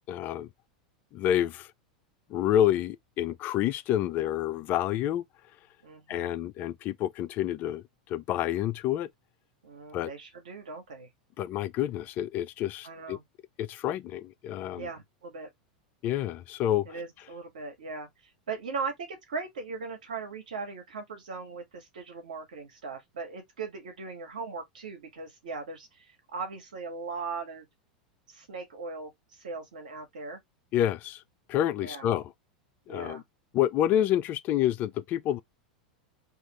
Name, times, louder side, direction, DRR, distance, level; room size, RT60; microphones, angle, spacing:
voice 1, 0.1-0.5 1.1-1.7 2.3-5.2 6.1-7.8 8.1-9.1 9.9-10.1 11.4-13.2 13.6-14.9 16.0-16.9 30.7-31.2 31.5-32.3 32.9-33.2 33.5-35.4, left 11 dB, 45° left, 0.3 m, -28 dB
voice 2, 5.8-6.3 9.6-11.1 12.8-13.2 14.7-15.5 16.8-27.6 28.3-30.4 31.8-32.1 32.9-33.2, right 4 dB, 80° right, 1.2 m, -39 dB
2.5 x 2.4 x 3.0 m
hypercardioid pair, 95°, 4 cm